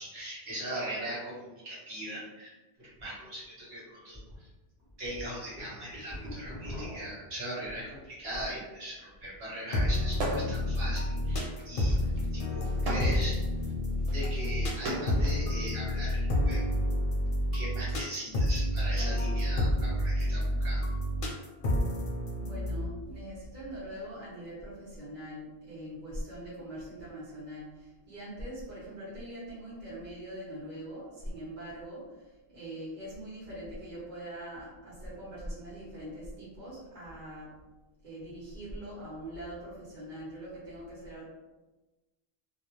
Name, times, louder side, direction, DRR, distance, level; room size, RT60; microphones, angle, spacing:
voice 1, 0.0-2.5 2.8-4.5 5.0-12.0 12.3-13.4 14.1-16.6 17.5-20.8, right 1 dB, 70° right, -7 dB, 1.2 m, -40 dB
sound 1, 3.0-3.1 3.5-3.6 4.1-4.3 4.8-8.6 9.0-9.4, left 1 dB, 20° right, 0.9 m, -43 dB
sound 2, 9.7-22.9, left 1 dB, 60° left, 0.7 m, -29 dB
sound 3, 10.1-10.7 11.0-15.4 16.3-17.9, right 1 dB, 90° right, 0.9 m, -37 dB
voice 2, 22.4-37.5 38.0-41.2, right 1 dB, 50° right, -10 dB, 1.1 m, -42 dB
2.4 x 2.0 x 2.9 m, 1.1 s
omnidirectional pair, 1.1 m